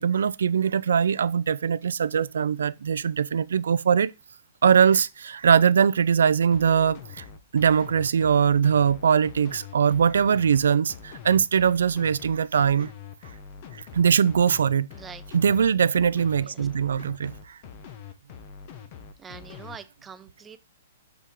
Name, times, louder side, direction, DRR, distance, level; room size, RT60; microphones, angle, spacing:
voice 1, 0.0-4.1 4.6-7.2 7.5-12.9 13.9-14.9 15.3-17.6, right 7 dB, 80° right, 0.4 m, -21 dB
sound 1, 6.5-19.8, left 7 dB, 45° left, 1.3 m, -44 dB
voice 2, 14.9-15.2 16.4-16.7 19.2-20.6, right 6 dB, 15° right, 0.6 m, -44 dB
6.4 x 5.5 x 3.7 m
hypercardioid pair, 135°, 0 cm